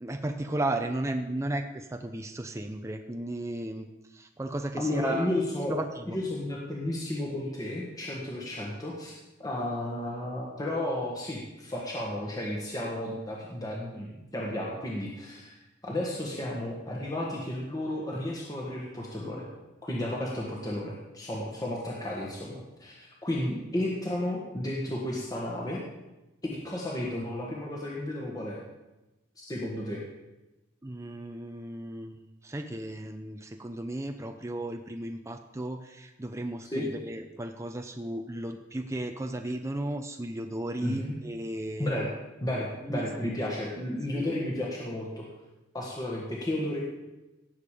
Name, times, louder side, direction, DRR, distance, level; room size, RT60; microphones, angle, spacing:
voice 1, 0.0-5.3 5.7-6.2 30.8-41.9 42.8-43.3 44.1-44.5, right 1 dB, 15° right, 5 dB, 0.6 m, -35 dB
voice 2, 4.8-5.8 6.1-9.1 9.4-15.6 15.8-19.5 19.8-25.8 26.6-28.6 29.5-30.0 36.7-36.9 40.8-41.1 41.8-42.1 42.4-45.2 45.7-46.8, left 1 dB, 20° left, -3 dB, 1.6 m, -33 dB
17.5 x 7.2 x 5.0 m, 1.0 s
head